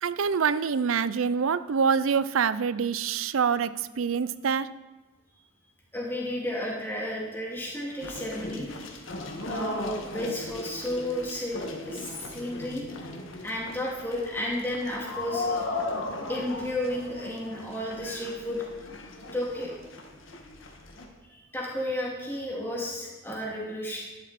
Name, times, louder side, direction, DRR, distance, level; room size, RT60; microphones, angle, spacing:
voice 1, 0.0-4.7, right 6 dB, 90° right, 16 dB, 0.5 m, -26 dB
voice 2, 5.9-8.7 9.4-12.8 13.4-15.6 16.3-18.6 19.3-19.7 21.3-24.0, left 1 dB, 10° left, -3 dB, 2.6 m, -32 dB
sound 1, 8.0-21.1, left 2 dB, 80° left, 1.8 m, -37 dB
12.5 x 11.0 x 4.2 m, 1.2 s
head